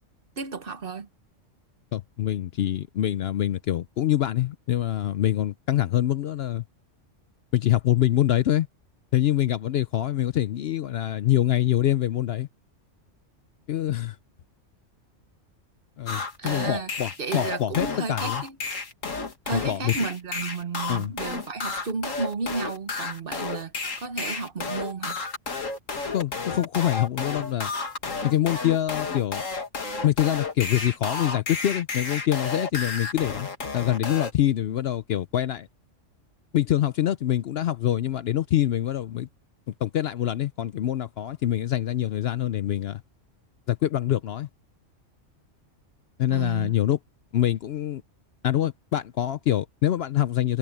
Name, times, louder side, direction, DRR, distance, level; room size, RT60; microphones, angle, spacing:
voice 1, 0.4-1.1 16.4-16.9 17.2-18.6 19.5-25.2 46.3-46.7, right 4 dB, 50° right, 1.2 m, -33 dB
voice 2, 1.9-6.6 7.5-8.7 9.1-12.5 13.7-14.2 16.0-18.4 19.5-20.0 20.9-21.1 26.1-27.7 28.2-29.4 30.0-33.5 33.7-35.7 36.5-39.3 39.7-43.0 43.7-44.5 46.2-47.0 47.3-48.0 48.4-50.6, left 12 dB, 65° left, 0.7 m, -25 dB
sound 1, 16.1-34.3, left 4 dB, 90° left, 2.5 m, -32 dB
omnidirectional pair, 1.3 m